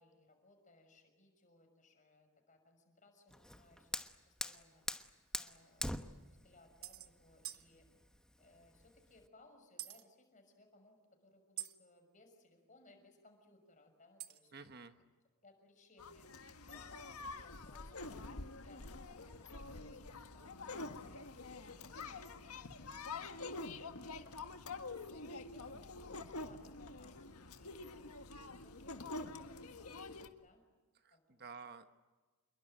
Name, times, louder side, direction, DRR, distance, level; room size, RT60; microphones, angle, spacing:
voice 1, 0.0-4.0 4.3-5.0 5.3-7.9 8.4-14.6 15.4-22.5 22.7-24.6 25.1-25.8 26.1-30.6 31.1-31.7, left 2 dB, 35° left, 5 dB, 6.1 m, -66 dB
Fire, 3.3-9.3, left 1 dB, 5° left, 1.1 m, -45 dB
sound 1, 4.4-4.6 5.6-5.7 5.9-6.0 6.8-7.1 7.4-7.7 9.8-10.0 11.6-11.8 14.2-14.5, right 14 dB, 75° right, 1.3 m, -46 dB
voice 2, 14.5-15.0 31.0-31.9, right 5 dB, 45° right, 9 dB, 1.2 m, -51 dB
sound 2, 16.0-30.3, left 3 dB, 90° left, 1.7 m, -47 dB
27.5 x 22.5 x 9.0 m, 1.3 s
head